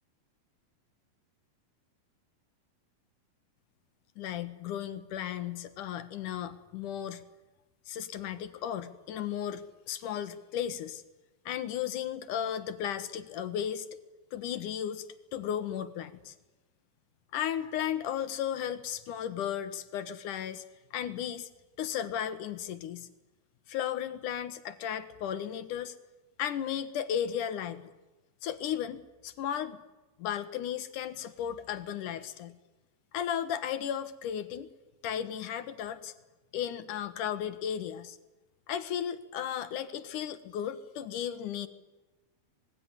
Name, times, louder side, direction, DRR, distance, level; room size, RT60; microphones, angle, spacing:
voice 1, 4.2-7.2 7.9-11.0 11.5-13.9 14.3-15.1 15.3-16.3 17.3-20.6 20.9-21.5 21.8-23.1 23.7-25.9 26.4-27.8 28.4-29.8 30.2-32.6 33.1-34.7 35.0-36.1 36.5-38.2 38.7-41.7, left 9 dB, 65° left, 11 dB, 2.4 m, -35 dB
26.5 x 20.0 x 9.8 m, 1.1 s
omnidirectional pair, 4.3 m